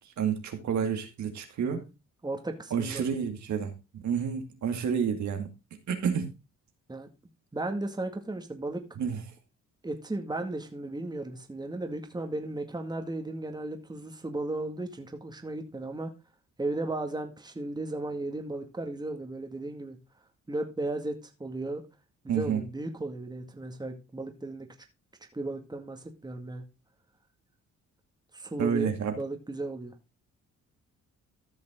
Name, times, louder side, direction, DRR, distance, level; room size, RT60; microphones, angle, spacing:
voice 1, 0.2-1.8 2.7-3.7 4.0-5.5 5.9-6.3 9.0-9.2 22.3-22.6 28.6-29.2, right 7 dB, 70° right, 5 dB, 2.3 m, -29 dB
voice 2, 2.2-3.0 6.9-7.1 7.5-8.8 9.8-16.1 16.6-20.0 20.5-21.8 22.2-24.7 25.3-26.6 28.3-28.9 29.2-29.9, right 2 dB, 15° right, 5 dB, 2.1 m, -35 dB
14.5 x 6.0 x 3.8 m, 0.27 s
cardioid pair, 90°, 30 cm